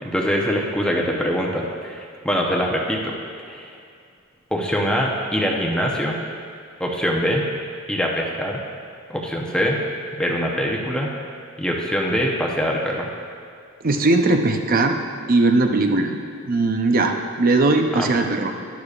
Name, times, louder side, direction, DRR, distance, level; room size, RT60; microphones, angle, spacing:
voice 1, 0.0-3.2 3.5-3.7 4.5-6.2 6.8-7.5 7.9-8.6 9.1-9.8 10.1-11.1 11.6-13.1 18.0-18.1, equal, 5° left, -1 dB, 0.8 m, -23 dB
voice 2, 13.8-15.0 15.3-16.2 16.5-18.5, right 2 dB, 45° right, 4 dB, 0.7 m, -19 dB
11.5 x 11.0 x 2.5 m, 2.3 s
head